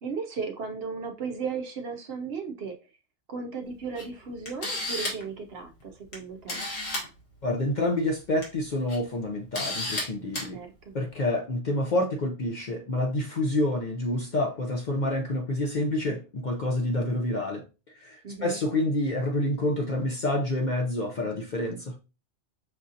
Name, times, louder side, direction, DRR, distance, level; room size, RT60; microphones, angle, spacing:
voice 1, 0.0-2.8 3.3-6.6 10.4-10.9 18.2-18.6, right 5 dB, 60° right, 0.7 m, -35 dB
Camera, 4.0-4.1 4.5-5.3 6.1-6.2 6.5-7.1 8.2-8.4 8.9-9.0 9.5-10.0 10.3-10.5, left 2 dB, 85° left, 1.9 m, -31 dB
voice 2, 7.4-10.6 10.9-17.6 17.9-22.0, left 1 dB, 50° left, 0.6 m, -28 dB
6.1 x 2.7 x 2.4 m
omnidirectional pair, 1.3 m